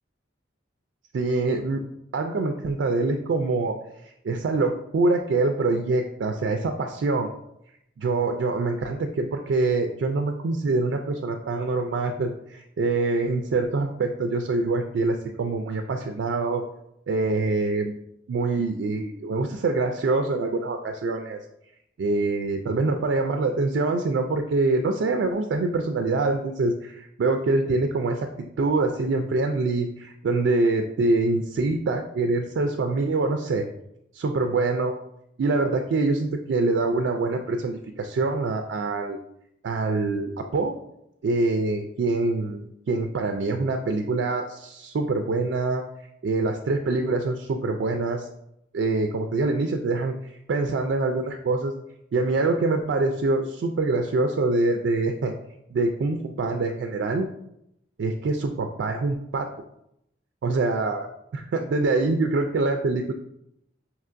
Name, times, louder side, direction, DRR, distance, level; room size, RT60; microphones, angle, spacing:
voice 1, 1.1-1.8 2.1-3.8 4.2-7.3 8.0-16.6 17.1-17.9 18.3-21.4 22.0-28.3 28.6-33.7 34.1-34.9 35.4-39.2 39.6-40.8 41.2-45.8 46.2-48.3 48.7-51.8 52.1-55.4 55.7-57.3 58.0-59.5 60.4-61.1 61.3-63.1, right 3 dB, 70° right, 5 dB, 0.3 m, -25 dB
5.5 x 2.8 x 2.5 m, 0.80 s
head